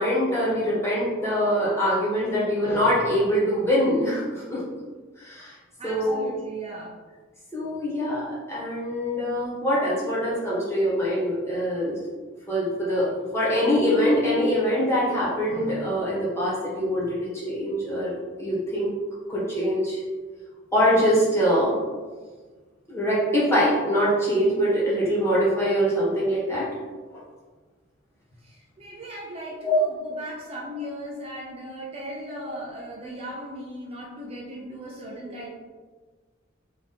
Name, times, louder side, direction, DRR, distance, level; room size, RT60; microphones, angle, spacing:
voice 1, 0.0-4.6 5.2-5.5 5.8-6.3 7.5-12.0 12.5-18.9 19.3-20.0 20.7-21.8 22.9-26.7 29.6-29.7, equal, 15° left, -8 dB, 1.5 m, -24 dB
voice 2, 5.8-7.0 28.4-35.5, equal, 30° right, -4 dB, 0.6 m, -38 dB
3.8 x 2.9 x 4.2 m, 1.4 s
head